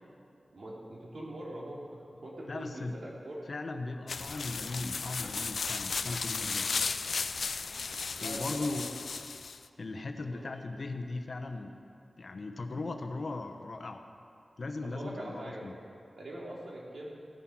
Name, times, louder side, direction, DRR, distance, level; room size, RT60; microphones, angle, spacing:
voice 1, 0.5-3.4 7.4-7.5 8.2-9.0 10.3-10.5 14.8-15.6 16.2-17.2, right 1 dB, 75° right, -4 dB, 3.0 m, -43 dB
voice 2, 2.5-3.0 3.5-6.7 8.2-8.9 9.8-11.7 12.2-14.0 14.6-15.7, left 3 dB, 65° left, 5 dB, 1.1 m, -38 dB
sound 1, 4.1-9.7, left 4 dB, 85° left, 0.4 m, -35 dB
16.0 x 9.9 x 6.2 m, 2.4 s
cardioid pair, 50°, 0 cm